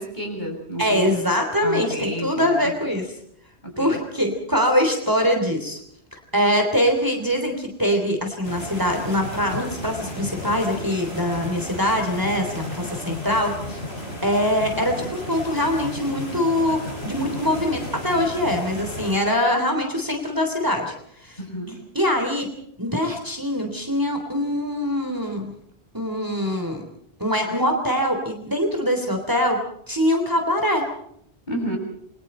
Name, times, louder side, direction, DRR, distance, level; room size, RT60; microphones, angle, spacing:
voice 1, 0.0-1.2 1.6-2.7 3.6-4.0 21.4-21.8 31.5-31.8, equal, 45° left, 1 dB, 7.5 m, -30 dB
voice 2, 0.8-3.1 3.8-5.8 6.1-13.8 14.2-20.9 21.2-21.4 22.0-22.5 22.8-25.5 25.9-26.8 27.2-29.6 29.9-30.9, equal, 20° right, 3 dB, 3.3 m, -23 dB
sound 1, 8.4-19.2, left 1 dB, 70° left, 5.5 m, -33 dB
28.5 x 23.5 x 4.4 m, 0.69 s
omnidirectional pair, 1.1 m